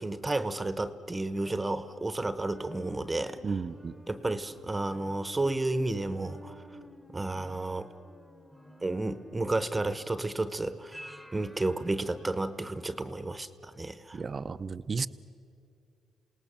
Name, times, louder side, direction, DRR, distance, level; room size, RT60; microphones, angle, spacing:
voice 1, 0.0-3.7 4.1-6.6 7.1-7.9 8.8-11.0 11.3-14.2, right 2 dB, 15° right, 12 dB, 1.1 m, -32 dB
sound 1, 1.4-12.9 13.3-13.4, equal, ahead, 1.3 m, -51 dB
voice 2, 3.4-3.9 14.1-15.1, right 5 dB, 40° right, 13 dB, 0.7 m, -33 dB
28.0 x 18.5 x 7.5 m, 2.5 s
cardioid pair, 90°, 0 cm